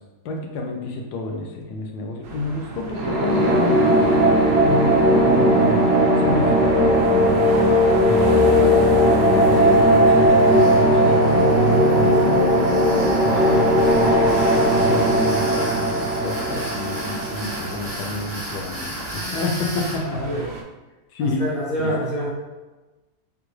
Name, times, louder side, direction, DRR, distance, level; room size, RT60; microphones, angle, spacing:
voice 1, 0.2-3.9 4.6-5.8 6.2-7.5 8.0-11.4 11.7-12.1 13.3-14.2 14.6-20.2 21.1-21.5 21.8-21.9, left 3 dB, 90° left, 2 dB, 1.3 m, -28 dB
sound 1, 2.2-20.6, right 4 dB, 75° right, 0.5 m, -33 dB
sound 2, 2.9-17.7, equal, 45° right, 1.1 m, -17 dB
Tools, 10.5-20.0, equal, 25° left, 1.6 m, -34 dB
voice 2, 12.0-12.8 20.0-20.5 21.2-22.3, equal, 60° left, -8 dB, 1.7 m, -28 dB
3.7 x 3.6 x 3.1 m, 1.2 s
omnidirectional pair, 1.7 m